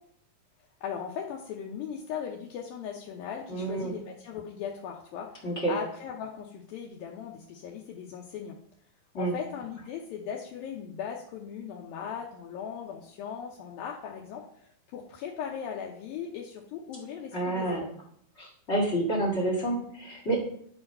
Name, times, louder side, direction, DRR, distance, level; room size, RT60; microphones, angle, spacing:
voice 1, 0.8-8.6 9.2-17.9, left 7 dB, 75° left, -1 dB, 2.5 m, -38 dB
voice 2, 3.5-4.0 5.4-5.7 9.1-9.3 17.3-17.8 18.4-20.4, right 2 dB, 40° left, -1 dB, 1.0 m, -29 dB
11.0 x 4.8 x 5.4 m, 0.67 s
omnidirectional pair, 4.3 m